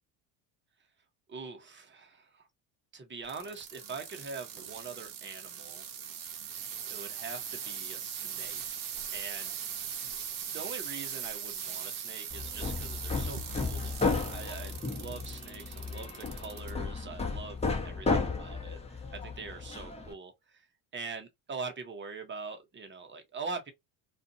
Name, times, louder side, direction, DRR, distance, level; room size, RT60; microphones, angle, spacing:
voice 1, 1.3-2.5 2.9-5.8 6.9-9.5 10.0-10.2 10.5-20.7 20.9-23.7, right 4 dB, 25° right, 1.1 m, -43 dB
sound 1, 3.2-16.7 17.2-17.7 18.4-18.5, right 8 dB, 45° right, 0.8 m, -40 dB
Hammer, 12.3-20.1, left 4 dB, 15° left, 1.1 m, -34 dB
2.5 x 2.5 x 2.6 m
hypercardioid pair, 70°, 45 cm